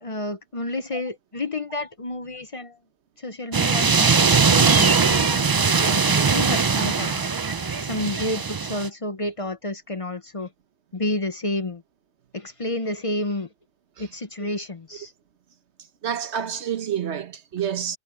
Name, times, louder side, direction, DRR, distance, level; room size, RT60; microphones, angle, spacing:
voice 1, 0.0-2.8 3.2-7.3 7.8-10.5 10.9-11.8 12.3-13.5 14.0-15.1, left 1 dB, 35° left, 0.8 m, -30 dB
sound 1, 3.5-8.9, right 5 dB, 35° right, 0.3 m, -20 dB
voice 2, 16.0-18.0, right 8 dB, 80° right, 1.3 m, -28 dB
omnidirectional pair, 1.1 m